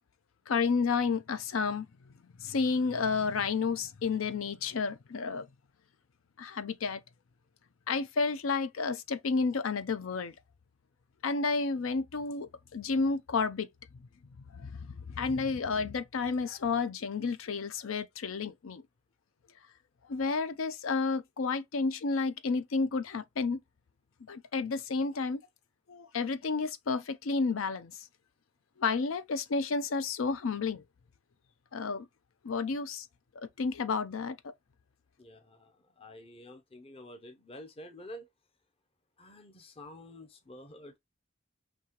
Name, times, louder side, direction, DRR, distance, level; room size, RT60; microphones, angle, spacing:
voice 1, 0.5-1.9 2.4-5.5 6.4-7.0 7.9-10.3 11.2-13.7 14.5-18.8 20.1-23.6 24.3-25.4 25.9-27.9 28.8-30.8 31.7-32.1 32.4-33.1 33.4-34.4, left 4 dB, 80° left, 0.5 m, -31 dB
voice 2, 35.2-38.3 39.2-41.0, left 1 dB, 30° left, 0.6 m, -49 dB
5.3 x 2.8 x 2.9 m
head